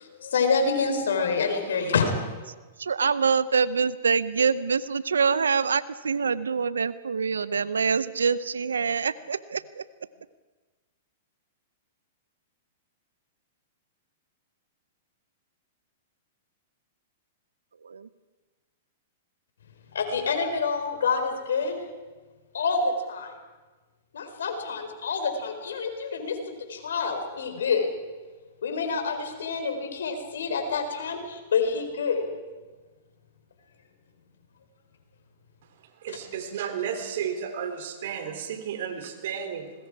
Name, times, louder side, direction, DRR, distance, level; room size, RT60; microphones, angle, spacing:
voice 1, 0.0-2.1 19.9-21.8 22.5-23.3 24.1-27.9 28.6-32.2, left 5 dB, 80° left, 5 dB, 4.3 m, -27 dB
voice 2, 2.8-9.8 17.8-18.1, right 5 dB, 90° right, 17 dB, 0.7 m, -25 dB
voice 3, 36.0-39.7, right 8 dB, 65° right, 6 dB, 3.3 m, -33 dB
26.0 x 20.5 x 4.8 m, 1.3 s
hypercardioid pair, 120°, 0 cm